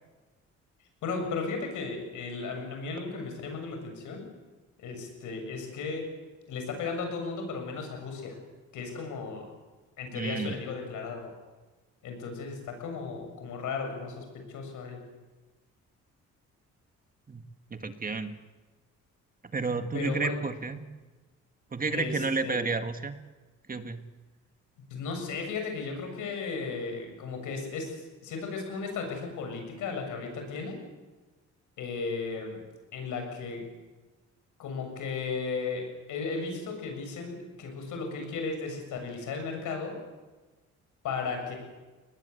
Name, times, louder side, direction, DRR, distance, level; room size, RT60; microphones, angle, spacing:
voice 1, 1.0-4.2 4.8-6.0 6.5-8.4 8.7-9.5 10.0-11.3 12.0-15.0 19.9-20.4 21.9-22.6 24.9-30.8 31.8-32.6 32.9-33.6 34.6-39.9 41.0-41.5, left 4 dB, 85° left, 4 dB, 7.4 m, -35 dB
voice 2, 10.1-10.6 17.3-17.4 17.7-18.3 19.5-20.8 21.7-23.1 23.7-24.0, right 4 dB, 30° right, 8 dB, 1.8 m, -31 dB
22.5 x 20.0 x 8.1 m, 1.2 s
cardioid pair, 90°, 30 cm